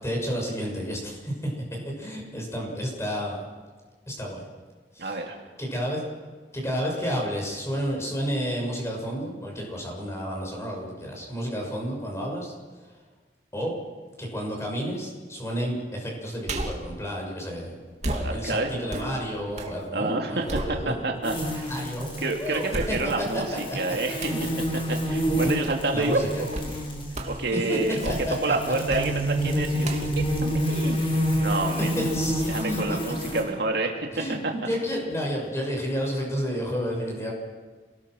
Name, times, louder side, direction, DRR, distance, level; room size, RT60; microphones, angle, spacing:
voice 1, 0.0-1.5 2.0-3.4 4.1-4.4 4.9-5.1 5.6-6.0 6.5-12.5 13.5-13.7 14.2-17.8 18.1-20.9 21.7-22.1 22.4-23.9 25.9-26.4 27.5-27.8 28.0-28.5 31.8-33.0 34.1-37.3, equal, 15° left, -1 dB, 6.8 m, -31 dB
voice 2, 5.0-5.4 18.2-18.7 19.9-20.4 20.9-21.7 22.2-24.3 24.7-26.5 27.3-28.1 28.4-32.0 32.5-34.0 34.4-34.5, right 2 dB, 65° right, 2 dB, 2.6 m, -28 dB
sound 1, 16.4-16.9 18.0-19.8 20.1-21.3 21.8-21.9 22.7-23.4 24.2-24.5 26.5-26.8 27.1-27.5 27.9-28.5 28.9-29.2 29.8-31.5 31.9-32.0, right 1 dB, 40° right, 2.7 m, -34 dB
sound 2, 21.2-33.4, equal, 30° left, 5.9 m, -28 dB
28.0 x 19.5 x 6.4 m, 1.4 s
head